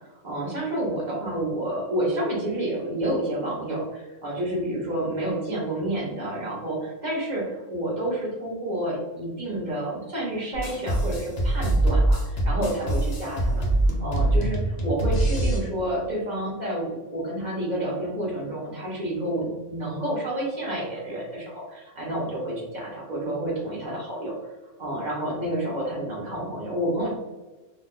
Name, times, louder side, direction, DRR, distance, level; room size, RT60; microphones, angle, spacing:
voice 1, 0.2-24.5 24.8-27.1, right 1 dB, 40° right, -4 dB, 0.8 m, -29 dB
sound 1, 10.5-15.6, right 1 dB, 80° left, 0.3 m, -23 dB
2.5 x 2.3 x 3.5 m, 1.2 s
omnidirectional pair, 1.5 m